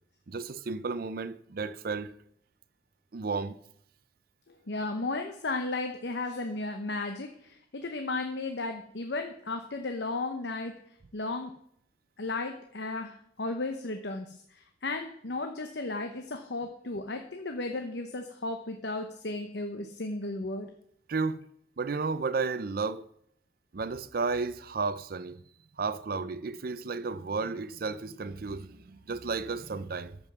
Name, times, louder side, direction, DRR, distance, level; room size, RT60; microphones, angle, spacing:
voice 1, 0.3-2.1 3.1-3.6 21.1-21.4 21.8-23.1 23.7-25.4 25.8-30.2, right 4 dB, 55° right, 0.5 m, -33 dB
voice 2, 4.7-10.7 11.1-11.5 12.2-13.1 13.4-14.4 14.8-20.7, left 2 dB, 65° left, 0.9 m, -34 dB
13.5 x 5.3 x 6.0 m
head